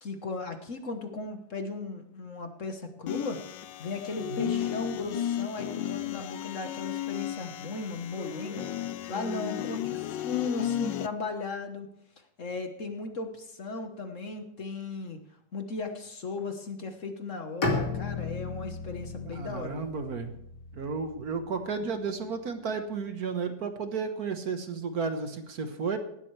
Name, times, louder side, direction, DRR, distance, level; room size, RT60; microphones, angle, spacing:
voice 1, 0.0-3.4 3.8-11.9 12.4-15.2 15.5-19.8, left 3 dB, 45° left, 6 dB, 1.5 m, -36 dB
sound 1, 3.1-11.1, left 11 dB, 85° left, 1.4 m, -34 dB
voice 2, 4.2-4.6 19.2-20.3 20.7-26.0, right 5 dB, 60° right, 7 dB, 1.6 m, -33 dB
Bowed string instrument, 17.6-21.5, left 3 dB, 65° left, 2.8 m, -34 dB
17.5 x 12.5 x 3.3 m, 0.75 s
omnidirectional pair, 1.9 m